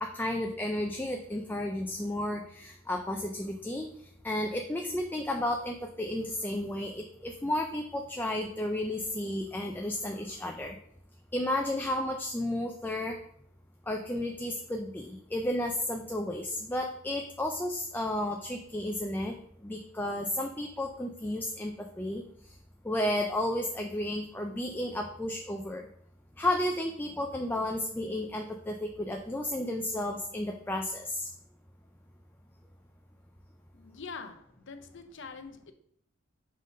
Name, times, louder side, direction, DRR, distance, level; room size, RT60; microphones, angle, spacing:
voice 1, 0.0-3.9 4.2-10.8 11.3-13.2 13.9-19.4 19.6-22.5 22.8-25.9 26.4-31.3, left 1 dB, 10° left, 0.4 m, -32 dB
voice 2, 33.7-35.7, left 4 dB, 60° left, 0.7 m, -44 dB
5.5 x 3.9 x 5.1 m
head